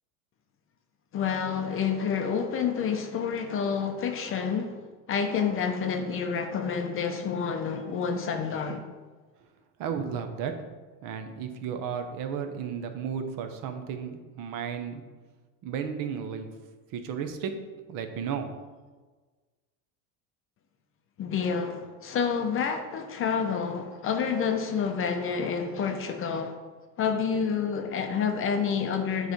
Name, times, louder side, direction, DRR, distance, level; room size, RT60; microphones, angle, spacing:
voice 1, 1.1-4.8 5.1-8.8 21.2-26.6 27.0-29.3, left 6 dB, 30° left, 0.6 m, -28 dB
voice 2, 9.8-10.5 11.0-15.0 15.6-16.5 16.9-17.5 17.9-18.5, right 7 dB, 50° right, 0.8 m, -33 dB
8.0 x 3.2 x 5.1 m
supercardioid pair, 130°, 43 cm